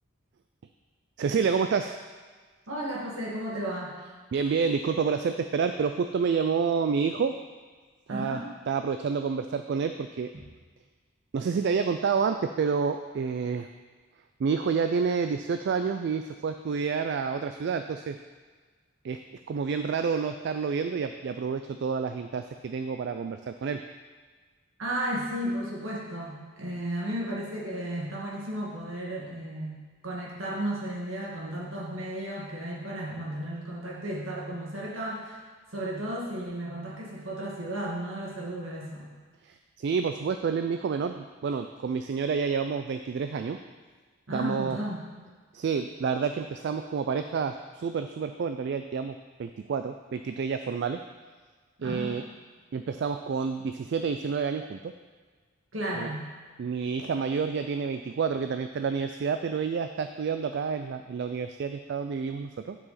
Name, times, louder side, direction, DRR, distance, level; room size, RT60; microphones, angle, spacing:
voice 1, 1.2-2.0 4.3-7.4 8.1-8.4 8.7-10.3 11.3-13.7 14.4-18.2 19.0-19.2 19.5-23.8 39.4-43.6 44.3-44.8 45.5-51.0 51.8-52.2 52.7-54.9 56.0-56.1 56.6-62.8, right 5 dB, 55° right, 7 dB, 0.3 m, -29 dB
voice 2, 2.7-3.9 8.1-8.5 24.8-35.4 35.7-39.1 44.3-45.0 51.8-52.2 55.7-56.3, right 1 dB, 70° right, -3 dB, 1.9 m, -34 dB
10.5 x 4.8 x 4.1 m, 1.5 s
head